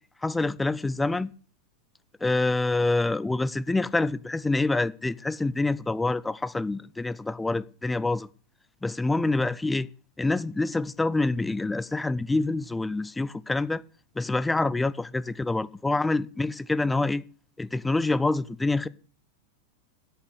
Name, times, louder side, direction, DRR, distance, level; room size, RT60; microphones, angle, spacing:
voice 1, 0.2-1.3 2.2-8.3 8.8-9.9 10.2-13.8 14.2-17.2 17.6-18.9, left 2 dB, 10° left, 0.6 m, -26 dB
11.0 x 8.2 x 8.1 m
figure-of-eight pair, 90°, 0 cm